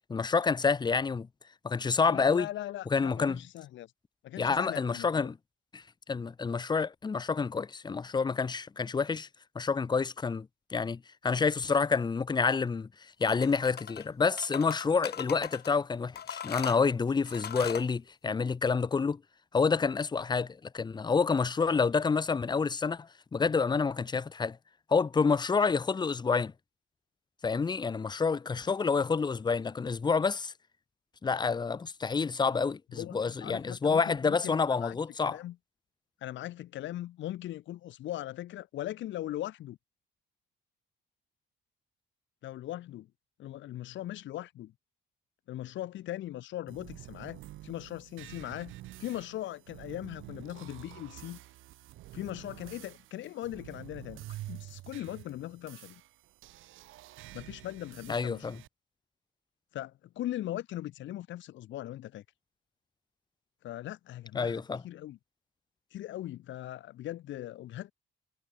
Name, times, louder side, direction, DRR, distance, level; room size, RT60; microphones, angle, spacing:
voice 1, 0.1-1.3 1.6-2.5 2.9-3.4 4.4-5.4 5.7-9.3 9.6-12.9 13.2-19.2 19.5-24.6 24.9-26.5 27.4-30.5 31.2-35.4 58.1-58.6 64.3-64.8, left 5 dB, 20° left, 0.5 m, -28 dB
voice 2, 2.1-3.9 4.2-5.3 32.9-35.6 36.2-39.8 42.4-43.1 43.4-44.7 45.5-48.7 49.0-51.4 52.1-56.0 57.3-58.6 59.7-62.2 63.6-65.2 65.9-67.9, left 13 dB, 70° left, 0.7 m, -40 dB
sound 1, 13.2-14.1 14.4-15.7 16.2-17.9, left 9 dB, 55° left, 1.1 m, -40 dB
sound 2, 46.7-58.7, right 16 dB, 85° right, 1.1 m, -48 dB
cardioid pair, 90°, 20 cm